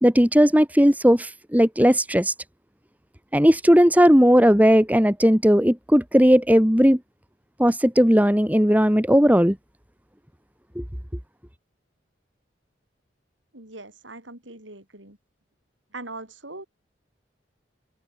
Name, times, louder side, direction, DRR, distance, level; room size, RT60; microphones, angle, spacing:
voice 1, 0.0-2.3 3.3-7.0 7.6-9.6 10.8-10.9, equal, 10° right, 2.2 m, -17 dB
voice 2, 13.5-15.2 15.9-16.7, right 2 dB, 75° right, 7.8 m, -40 dB
open air
head